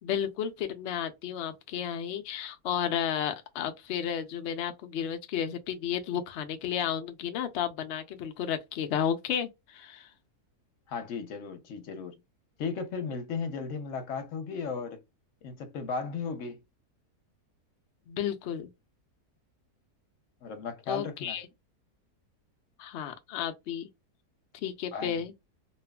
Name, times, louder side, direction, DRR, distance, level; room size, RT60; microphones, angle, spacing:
voice 1, 0.0-10.1 18.1-18.7 20.9-21.4 22.8-23.9 24.6-25.3, left 9 dB, 80° left, 0.6 m, -32 dB
voice 2, 10.9-12.2 12.6-15.0 15.4-16.6 20.4-21.4 24.6-25.2, left 5 dB, 60° left, 0.9 m, -36 dB
2.8 x 2.4 x 2.2 m
omnidirectional pair, 1.7 m